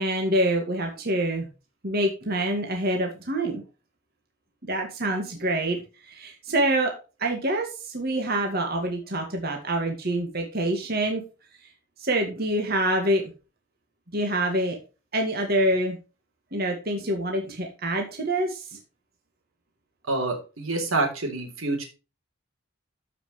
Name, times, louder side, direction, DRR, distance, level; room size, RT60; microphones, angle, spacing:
voice 1, 0.0-1.5 1.8-3.6 4.7-6.9 7.2-11.2 12.0-13.3 14.1-14.8 15.1-16.0 16.5-18.8, right 1 dB, 50° right, 2 dB, 2.0 m, -26 dB
voice 2, 20.1-21.9, right 2 dB, 85° right, 3 dB, 3.6 m, -27 dB
14.0 x 5.7 x 3.2 m, 0.31 s
head